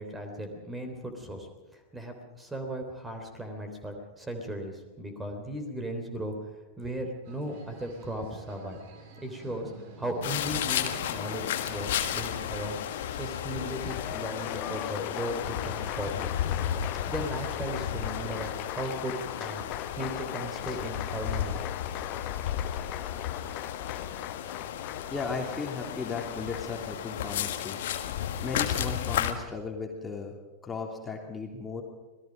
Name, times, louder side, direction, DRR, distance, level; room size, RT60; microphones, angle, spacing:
voice 1, 0.0-6.4 6.8-8.8 9.2-9.7 10.0-12.8 13.1-16.3 17.1-19.6 20.0-21.6, right 1 dB, 10° right, 5 dB, 3.3 m, -36 dB
sound 1, 7.2-12.5, right 2 dB, 50° right, 3.7 m, -48 dB
sound 2, 10.2-29.3, left 10 dB, 55° left, 1.7 m, -33 dB
Applause, 13.5-26.8, left 13 dB, 40° left, 0.9 m, -39 dB
voice 2, 25.1-27.8 28.4-30.3 30.6-31.8, left 4 dB, 15° left, 1 dB, 3.1 m, -36 dB
26.5 x 19.5 x 5.2 m, 1.1 s
figure-of-eight pair, 90°, 0 cm